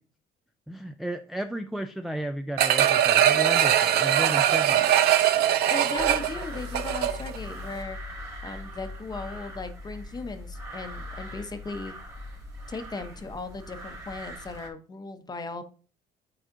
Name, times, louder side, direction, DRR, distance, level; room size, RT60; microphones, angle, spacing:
voice 1, 0.7-5.0, right 1 dB, ahead, 7 dB, 0.3 m, -34 dB
sound 1, 2.6-7.4 7.8-7.9, right 11 dB, 70° right, 0.6 m, -21 dB
voice 2, 5.7-8.0 8.4-11.9 12.7-15.6, left 3 dB, 25° left, 8 dB, 0.8 m, -37 dB
sound 2, 6.0-14.7, left 1 dB, 20° right, 1.8 m, -40 dB
8.9 x 4.1 x 2.5 m, 0.38 s
cardioid pair, 110°, 17 cm